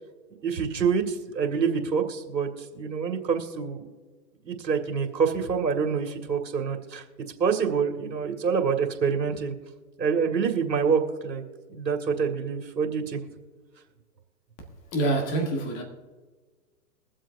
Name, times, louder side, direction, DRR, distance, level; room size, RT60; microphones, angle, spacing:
voice 1, 0.4-3.8 4.4-7.0 7.4-9.5 10.0-11.4 11.7-13.2, right 6 dB, 85° right, 2.3 m, -26 dB
voice 2, 14.9-15.8, right 2 dB, 15° left, 1.3 m, -26 dB
23.0 x 7.7 x 2.7 m
hypercardioid pair, 155°, 49 cm